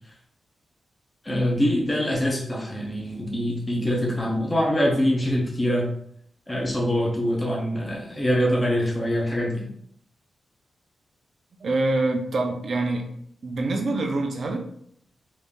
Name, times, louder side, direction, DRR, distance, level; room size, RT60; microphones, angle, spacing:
voice 1, 1.2-5.9 6.5-9.7, equal, 15° left, -2 dB, 0.9 m, -24 dB
voice 2, 11.6-13.1 13.4-14.6, right 2 dB, 55° right, 3 dB, 0.8 m, -25 dB
4.1 x 2.8 x 3.6 m, 0.66 s
wide cardioid pair, 140°, 0 cm